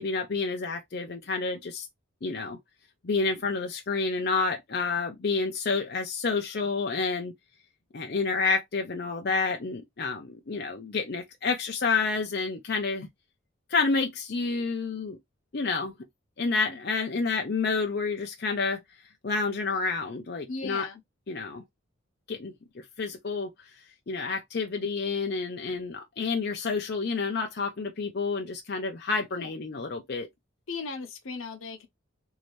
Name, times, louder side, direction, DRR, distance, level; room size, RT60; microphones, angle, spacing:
voice 1, 0.0-1.9 2.2-2.6 3.0-7.3 7.9-13.1 13.7-15.2 15.5-15.9 16.4-18.8 19.2-20.9 21.3-21.6 22.3-22.5 23.0-23.5 24.1-30.3, left 4 dB, 50° left, 0.5 m, -29 dB
voice 2, 20.5-21.0 29.3-29.5 30.7-31.9, left 4 dB, 80° left, 0.8 m, -37 dB
3.1 x 2.8 x 3.0 m
head